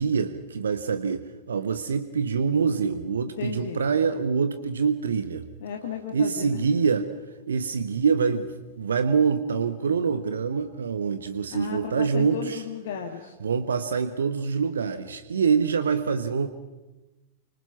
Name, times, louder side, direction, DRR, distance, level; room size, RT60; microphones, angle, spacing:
voice 1, 0.0-5.5 6.1-7.1 7.5-12.6 13.4-16.5, right 5 dB, 70° right, 11 dB, 1.1 m, -25 dB
voice 2, 3.4-3.9 5.6-6.6 11.5-13.4, left 7 dB, 55° left, 2 dB, 2.0 m, -34 dB
29.0 x 26.0 x 5.8 m, 1.1 s
figure-of-eight pair, 90°, 0 cm